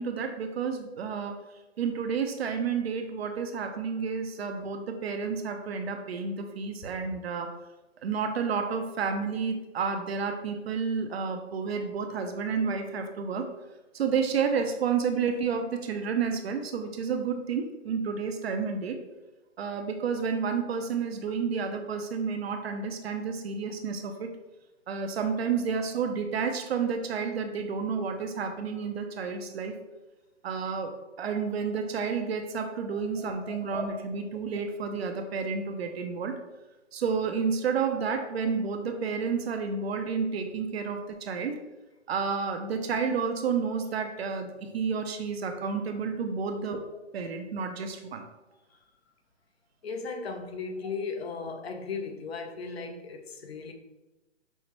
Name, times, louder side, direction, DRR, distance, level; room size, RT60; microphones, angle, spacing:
voice 1, 0.0-1.4 1.8-7.5 8.0-13.5 13.9-19.0 19.6-24.3 24.9-29.8 30.4-30.9 31.2-36.4 36.9-41.6 42.1-46.8 47.1-48.2, right 5 dB, 55° right, 6 dB, 0.5 m, -30 dB
voice 2, 49.8-53.7, left 4 dB, 55° left, 5 dB, 0.6 m, -36 dB
5.4 x 2.1 x 3.0 m, 1.1 s
hypercardioid pair, 140°, 37 cm